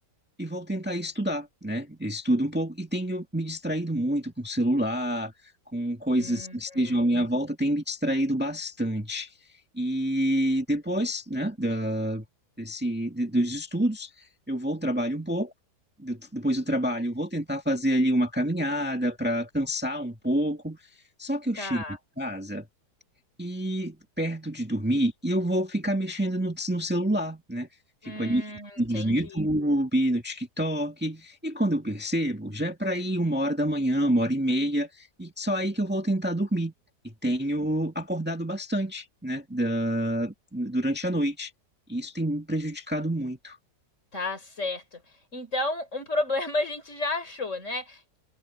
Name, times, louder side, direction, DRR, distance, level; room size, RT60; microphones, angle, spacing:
voice 1, 0.4-5.3 5.7-9.3 9.7-12.3 12.6-15.5 16.0-20.8 21.2-21.8 22.2-22.7 23.4-27.7 28.0-28.4 28.8-36.7 37.0-41.5 41.9-43.6, right 1 dB, 5° right, 1.9 m, -27 dB
voice 2, 6.1-7.0 21.6-22.0 28.0-29.4 44.1-48.2, left 2 dB, 45° left, 4.7 m, -32 dB
omnidirectional pair, 1.7 m